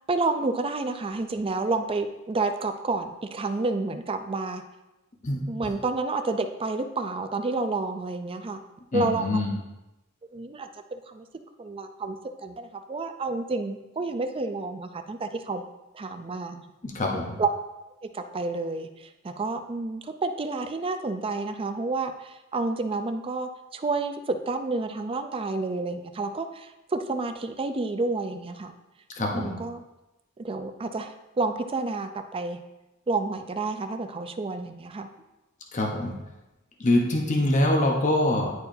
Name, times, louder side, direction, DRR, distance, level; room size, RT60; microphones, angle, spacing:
voice 1, 0.1-4.6 5.5-8.6 8.9-9.2 10.3-11.2 11.6-15.6 15.9-16.6 17.4-17.5 18.0-28.7 29.3-29.8 30.4-32.6 33.1-35.1, right 3 dB, 25° right, 8 dB, 0.4 m, -30 dB
voice 2, 5.2-5.7 8.9-9.5 16.8-17.4 29.2-29.5 35.7-36.1 36.8-38.5, left 1 dB, 35° left, 0 dB, 0.8 m, -24 dB
10.0 x 4.6 x 2.6 m, 0.99 s
head